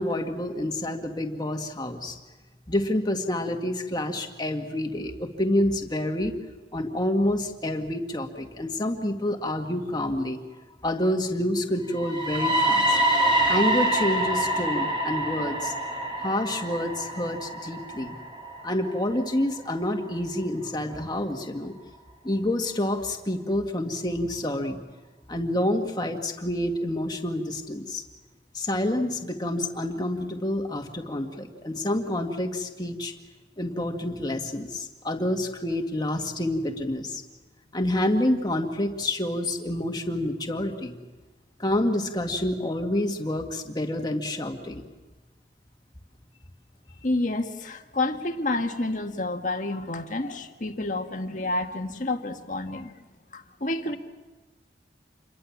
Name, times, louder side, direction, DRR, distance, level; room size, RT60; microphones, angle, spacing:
voice 1, 0.0-2.2 2.7-6.4 6.7-10.4 10.8-13.0 13.5-15.7 16.2-18.2 18.6-21.7 22.2-24.8 25.3-28.0 28.5-33.1 33.6-37.2 37.7-41.0 41.6-44.8, left 1 dB, 20° left, 3 dB, 2.1 m, -28 dB
sound 1, 12.0-19.9, right 1 dB, 30° right, 4.6 m, -26 dB
voice 2, 47.0-52.9 53.3-54.0, left 2 dB, 45° left, 5 dB, 1.7 m, -29 dB
28.0 x 22.5 x 7.4 m, 1.2 s
head